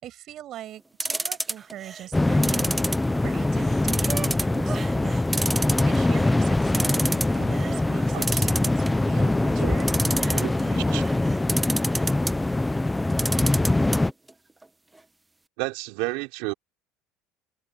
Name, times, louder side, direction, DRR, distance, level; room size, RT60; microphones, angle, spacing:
voice 1, 0.0-2.8 3.2-5.2 5.5-11.3, right 12 dB, 55° right, 6.8 m, -41 dB
sound 1, 1.0-1.7 2.4-3.4 3.9-4.6 4.9-5.0 5.3-6.1 6.5-6.6 6.7-7.4 8.2-9.1 9.8-10.6 11.5-12.3 13.1-14.0 14.3-14.4 14.6-14.7, right 2 dB, 10° right, 1.3 m, -28 dB
sound 2, 1.6-2.7 3.0-5.3 5.8-6.7 7.1-9.1 10.1-12.1 12.6-12.7, right 6 dB, 35° right, 3.0 m, -43 dB
sound 3, 2.1-14.1, left 2 dB, 10° left, 1.1 m, -23 dB
voice 2, 15.6-16.5, right 26 dB, 75° right, 3.7 m, -31 dB
open air
supercardioid pair, 85°, 0 cm